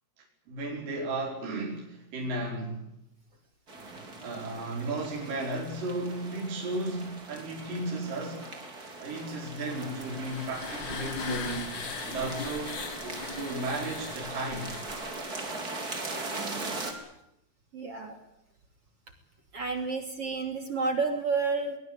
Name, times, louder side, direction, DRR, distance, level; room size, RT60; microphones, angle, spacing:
voice 1, 0.2-2.9 4.2-8.5 9.0-14.7, right 2 dB, 55° right, -1 dB, 6.5 m, -35 dB
sound 1, 3.7-16.9, right 2 dB, 25° right, 4.0 m, -40 dB
sound 2, 9.7-15.5, left 5 dB, 85° left, 1.0 m, -40 dB
voice 2, 16.7-17.1 17.7-18.2 19.5-21.8, right 4 dB, 40° right, 6 dB, 3.4 m, -31 dB
23.0 x 21.5 x 8.9 m, 0.81 s
omnidirectional pair, 4.7 m